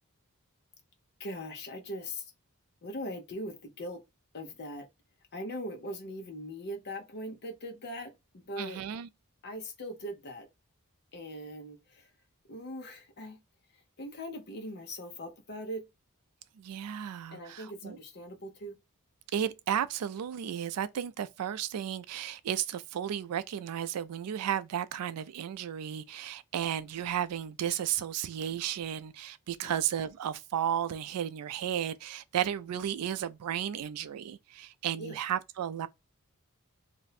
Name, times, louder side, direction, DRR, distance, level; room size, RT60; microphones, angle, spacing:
voice 1, 1.2-2.3 2.8-4.0 4.3-4.9 5.3-8.8 9.4-10.5 11.1-12.1 12.5-13.4 14.0-15.8 17.3-18.7 29.6-29.7 35.0-35.2, equal, 50° left, 0.7 m, -40 dB
voice 2, 8.6-9.1 16.6-18.0 19.3-35.9, right 9 dB, 85° right, 0.3 m, -33 dB
2.6 x 2.1 x 4.0 m
head